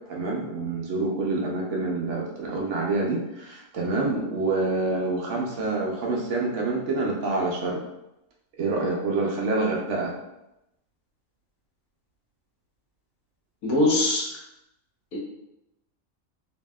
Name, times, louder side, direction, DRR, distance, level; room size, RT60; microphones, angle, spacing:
voice 1, 0.1-7.8 8.6-10.1, right 3 dB, 65° right, -2 dB, 0.8 m, -27 dB
voice 2, 13.6-14.3 15.1-15.2, left 2 dB, 80° left, -3 dB, 1.2 m, -22 dB
2.7 x 2.6 x 2.2 m, 0.89 s
omnidirectional pair, 1.4 m